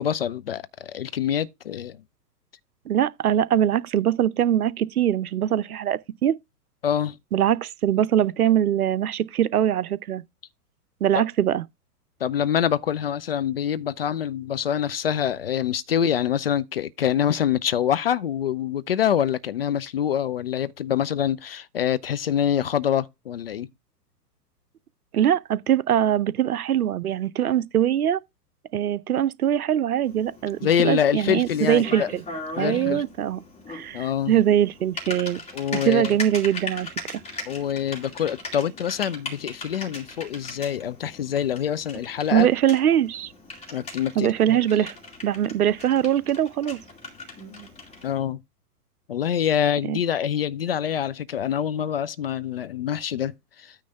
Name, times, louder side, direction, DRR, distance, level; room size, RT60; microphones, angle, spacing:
voice 1, 0.0-2.0 6.8-7.2 11.1-11.2 12.2-23.7 30.6-32.1 32.6-33.0 33.9-34.4 35.5-36.2 37.5-42.5 43.7-44.6 48.0-48.4 49.1-53.8, left 9 dB, 40° left, 0.4 m, -25 dB
voice 2, 2.9-6.3 7.3-10.2 11.0-11.6 25.1-28.2 28.7-32.2 32.6-33.4 33.7-35.4 35.7-37.2 42.3-43.3 44.2-45.0 45.2-46.8 49.9-50.0, right 10 dB, 65° right, 0.7 m, -22 dB
Typing, 30.0-48.1, left 2 dB, 15° left, 2.3 m, -39 dB
9.3 x 3.2 x 6.7 m
figure-of-eight pair, 110°, 48 cm